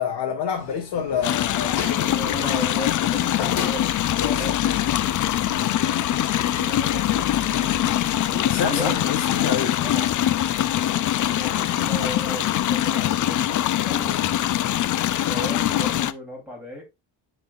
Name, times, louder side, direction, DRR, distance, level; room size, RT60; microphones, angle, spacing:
voice 1, 0.0-2.1 4.2-4.8 5.5-6.0 7.9-9.8, left 7 dB, 65° left, 1.3 m, -28 dB
sound 1, 0.5-15.7, left 6 dB, 85° left, 1.7 m, -40 dB
sound 2, 1.2-16.1, left 12 dB, 45° left, 0.4 m, -23 dB
voice 2, 1.9-3.9 4.2-4.7 6.3-9.0 9.8-10.1 11.1-14.7 15.2-16.8, equal, 5° right, 3.0 m, -36 dB
10.5 x 3.9 x 2.3 m
cardioid pair, 130°, 45 cm